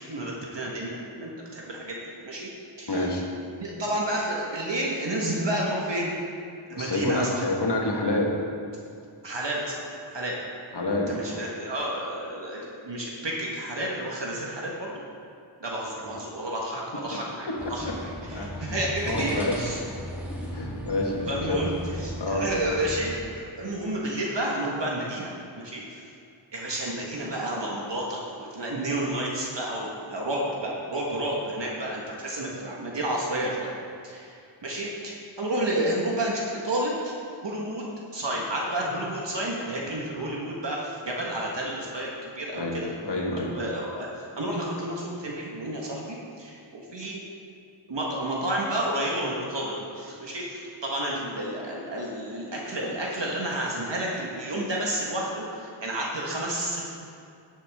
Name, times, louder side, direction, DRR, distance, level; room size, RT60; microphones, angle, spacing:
voice 1, 0.1-2.0 2.2-2.5 2.8-3.1 3.6-6.1 6.7-7.4 9.2-10.4 10.9-15.0 15.6-19.8 21.3-25.3 25.6-26.0 26.5-33.7 34.0-34.3 34.6-37.1 37.4-37.9 38.1-42.9 43.5-47.2 47.9-56.8, right 1 dB, 60° right, -3 dB, 1.6 m, -31 dB
voice 2, 2.9-3.3 6.7-8.3 10.7-11.4 17.5-17.6 18.3-19.7 20.5-21.6 22.2-22.4 42.5-43.5, left 2 dB, 55° left, -1 dB, 1.7 m, -28 dB
sound 1, 17.6-23.1, equal, 5° right, 1.8 m, -37 dB
12.0 x 8.3 x 3.6 m, 2.5 s
wide cardioid pair, 75°, 48 cm